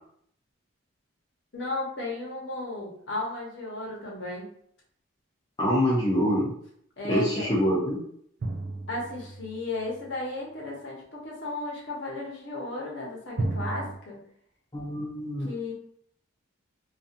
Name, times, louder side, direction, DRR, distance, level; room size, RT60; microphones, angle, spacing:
voice 1, 1.5-4.5 7.0-7.5 8.9-14.2 15.4-15.7, left 2 dB, 55° left, -3 dB, 0.8 m, -34 dB
voice 2, 5.6-6.5 7.1-8.0 14.7-15.5, equal, 20° left, -6 dB, 0.4 m, -25 dB
sound 1, 8.4-10.1 13.4-14.0, right 2 dB, 50° right, 0.3 m, -33 dB
2.6 x 2.3 x 2.4 m, 0.66 s
head